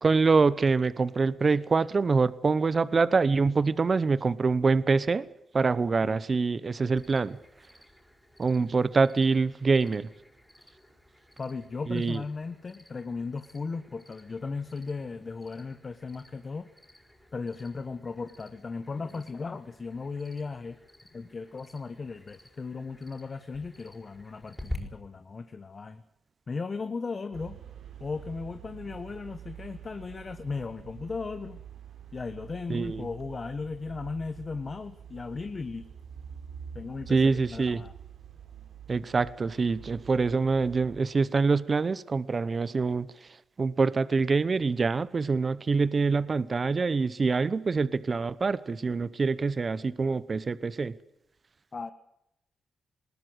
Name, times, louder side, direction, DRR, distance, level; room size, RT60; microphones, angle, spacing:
voice 1, 0.0-5.3 5.5-7.4 8.4-10.1 11.9-12.2 32.7-33.1 37.1-37.8 38.9-43.3 43.6-51.0, right 4 dB, 35° right, 17 dB, 0.8 m, -25 dB
Cricket, 7.0-24.8, left 1 dB, 5° left, 5.0 m, -49 dB
voice 2, 11.4-16.7 17.3-20.8 21.1-26.0 26.5-27.6 28.0-31.6 32.1-35.8 36.7-37.9 51.7-51.9, left 4 dB, 35° left, 10 dB, 1.2 m, -36 dB
sound 1, 27.3-41.0, right 8 dB, 80° right, 3.6 m, -47 dB
20.5 x 19.0 x 8.0 m, 0.84 s
cardioid pair, 100°, 0 cm